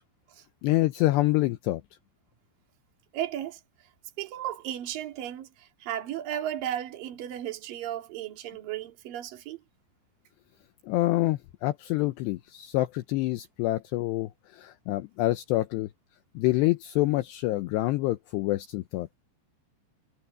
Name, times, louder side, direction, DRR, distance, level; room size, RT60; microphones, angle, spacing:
voice 1, 0.6-1.8 10.9-15.9 16.4-19.1, left 18 dB, 80° left, 2.5 m, -27 dB
voice 2, 3.1-3.6 4.2-9.6, right 11 dB, 50° right, 3.9 m, -35 dB
omnidirectional pair, 5.5 m